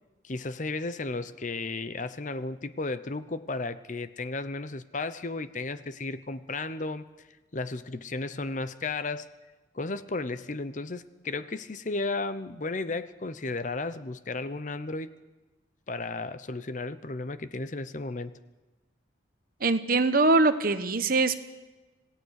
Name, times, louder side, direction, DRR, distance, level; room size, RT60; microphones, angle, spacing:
voice 1, 0.2-7.0 7.5-9.3 9.7-15.1 15.9-18.3, left 3 dB, 40° left, 13 dB, 0.8 m, -34 dB
voice 2, 19.6-21.4, right 3 dB, 45° right, 10 dB, 1.1 m, -23 dB
26.5 x 17.5 x 6.5 m, 1.2 s
head